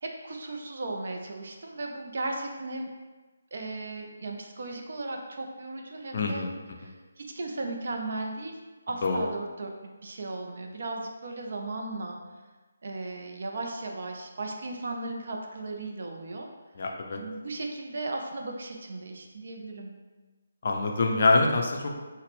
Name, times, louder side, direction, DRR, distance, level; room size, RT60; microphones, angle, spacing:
voice 1, 0.0-2.9 3.5-6.4 6.8-8.6 8.9-12.2 12.8-16.5 17.1-19.9, right 2 dB, 50° right, 2 dB, 0.4 m, -36 dB
voice 2, 6.1-6.5 6.8-6.9 9.0-9.2 16.8-17.2 20.6-22.0, left 3 dB, 45° left, 2 dB, 0.4 m, -25 dB
3.9 x 2.1 x 3.5 m, 1.3 s
figure-of-eight pair, 145°, 0 cm